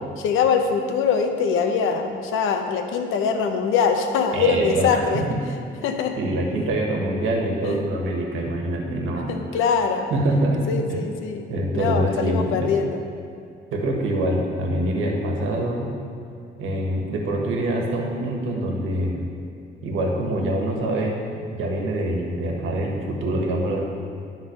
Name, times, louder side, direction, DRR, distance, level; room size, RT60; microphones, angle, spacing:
voice 1, 0.2-5.2 5.8-6.2 7.6-7.9 9.3-10.1 10.7-11.5 11.7-13.0, left 6 dB, 90° left, 6 dB, 0.8 m, -23 dB
voice 2, 4.3-5.1 6.2-9.3 10.1-10.6 10.9-11.0 11.5-12.7 13.7-15.9 16.6-19.3 19.8-21.2 21.5-24.0, right 1 dB, 85° right, 0 dB, 1.4 m, -25 dB
11.5 x 3.9 x 5.2 m, 2.4 s
cardioid pair, 90°, 20 cm